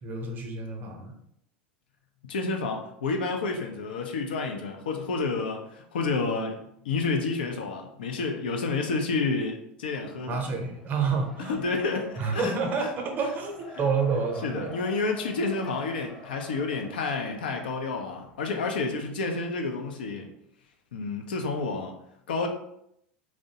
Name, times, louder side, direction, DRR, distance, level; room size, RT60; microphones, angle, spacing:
voice 1, 0.0-1.1 10.3-11.6 12.2-14.7, right 4 dB, 40° right, 2 dB, 0.6 m, -29 dB
voice 2, 2.3-6.6 6.8-10.4 11.5-12.5 12.8-12.9 14.4-20.3 20.9-21.9 22.3-22.5, left 3 dB, 75° left, 4 dB, 0.4 m, -29 dB
Race car auto racing, 10.1-19.1, left 2 dB, 10° left, 0.5 m, -49 dB
2.6 x 2.0 x 2.7 m, 0.74 s
hypercardioid pair, 85°, 5 cm